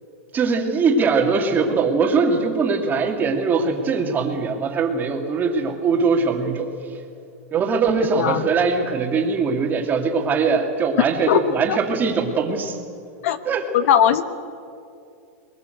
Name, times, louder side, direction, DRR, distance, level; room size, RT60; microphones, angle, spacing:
voice 1, 0.3-6.7 7.5-12.8 13.4-13.7, right 4 dB, 25° right, 3 dB, 2.5 m, -21 dB
voice 2, 11.3-11.8 13.2-13.4 13.7-14.3, left 10 dB, 70° left, 12 dB, 1.2 m, -19 dB
22.0 x 20.5 x 8.0 m, 2.5 s
supercardioid pair, 140°, 8 cm